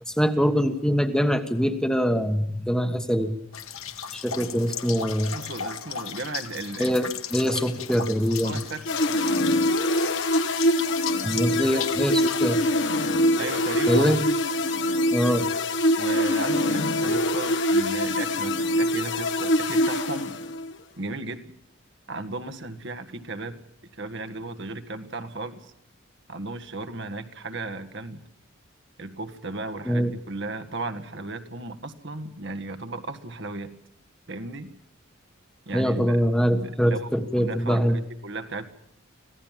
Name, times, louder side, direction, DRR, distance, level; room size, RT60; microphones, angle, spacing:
voice 1, 0.1-3.3 4.1-5.3 6.8-8.6 11.2-12.6 13.9-14.2 15.1-15.5 29.8-30.1 35.7-38.0, equal, 5° left, 6 dB, 1.4 m, -23 dB
sound 1, 3.5-12.5, left 8 dB, 85° left, 1.9 m, -36 dB
voice 2, 5.3-7.1 7.4-7.5 8.4-8.8 11.6-11.8 13.4-14.1 16.0-20.4 21.0-21.5 22.1-23.6 23.9-25.7 26.3-28.2 29.0-33.7 34.3-34.7 35.6-36.2 36.5-37.1 37.3-38.7, right 2 dB, 60° right, 8 dB, 1.7 m, -35 dB
sound 2, 8.9-20.7, left 1 dB, 55° left, 1.5 m, -24 dB
25.5 x 17.0 x 7.5 m, 0.70 s
head